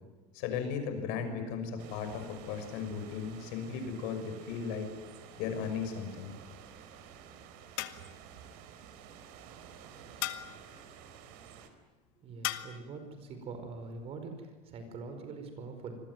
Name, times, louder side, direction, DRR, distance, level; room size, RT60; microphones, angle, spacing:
voice 1, 0.3-4.9 5.4-6.3, left 6 dB, 70° left, 7 dB, 6.2 m, -36 dB
sound 1, 1.8-11.7, right 8 dB, 70° right, 4.0 m, -52 dB
sound 2, 5.6-6.1 7.8-8.3 10.2-10.7 12.4-12.9, left 16 dB, 85° left, 1.8 m, -38 dB
voice 2, 12.2-16.0, right 4 dB, 40° right, 7 dB, 5.2 m, -43 dB
27.5 x 21.5 x 9.4 m, 1.2 s
cardioid pair, 160°, 16 cm